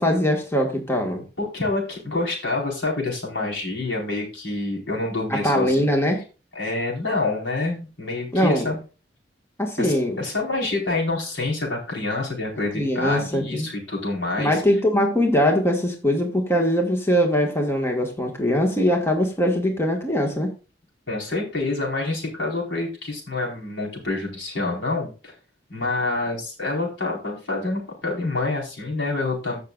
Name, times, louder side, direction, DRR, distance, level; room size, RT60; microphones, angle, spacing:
voice 1, 0.0-1.2 5.3-6.2 8.3-8.7 9.6-10.2 12.7-13.7 14.4-20.5, equal, 15° left, 2 dB, 1.7 m, -21 dB
voice 2, 1.4-5.9 6.5-8.8 9.8-14.6 21.1-25.3 25.7-29.6, left 2 dB, 75° left, -2 dB, 4.7 m, -27 dB
15.0 x 6.7 x 2.5 m, 0.33 s
head